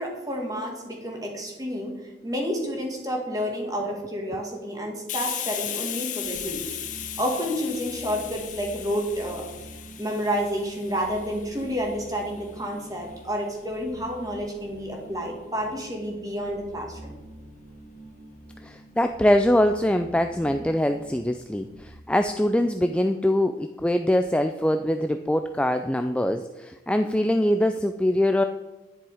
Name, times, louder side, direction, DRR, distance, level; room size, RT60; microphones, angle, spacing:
voice 1, 0.0-1.9 2.2-6.6 7.2-9.5 10.0-17.2, equal, 20° right, 1 dB, 2.1 m, -30 dB
Hiss, 5.1-12.5, left 11 dB, 45° left, 0.9 m, -36 dB
sound 1, 6.2-21.8, right 1 dB, 40° right, 4.4 m, -46 dB
voice 2, 18.6-28.4, left 1 dB, 5° left, 7 dB, 0.3 m, -23 dB
10.5 x 10.0 x 4.9 m, 1.1 s
head